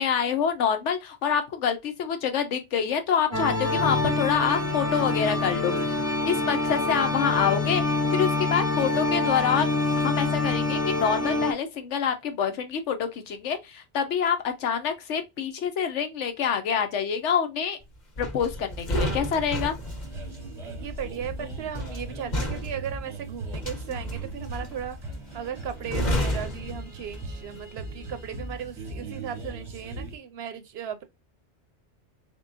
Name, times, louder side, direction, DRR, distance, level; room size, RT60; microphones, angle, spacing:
voice 1, 0.0-5.7 6.2-7.8 8.1-9.7 10.0-17.8 18.2-19.7, left 7 dB, 80° left, 1.1 m, -26 dB
sound 1, 3.3-11.5, left 2 dB, 20° left, 0.5 m, -26 dB
sound 2, 18.2-27.5 27.8-28.1, equal, 40° left, 1.0 m, -32 dB
voice 2, 18.9-19.3 20.6-25.0 25.3-31.0, right 8 dB, 65° right, 0.8 m, -36 dB
sound 3, 19.8-30.2, right 2 dB, 30° right, 0.8 m, -39 dB
3.7 x 3.6 x 2.5 m
omnidirectional pair, 1.2 m